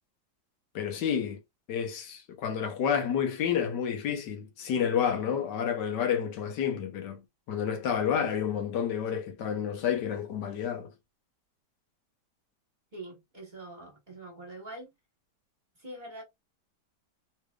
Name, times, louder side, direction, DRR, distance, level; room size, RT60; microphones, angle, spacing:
voice 1, 0.7-1.4 1.7-7.2 7.5-10.9, left 8 dB, 75° left, 1.4 m, -30 dB
voice 2, 12.9-14.9 15.8-16.2, right 2 dB, 30° right, 1.5 m, -44 dB
3.6 x 3.2 x 2.3 m
omnidirectional pair, 1.8 m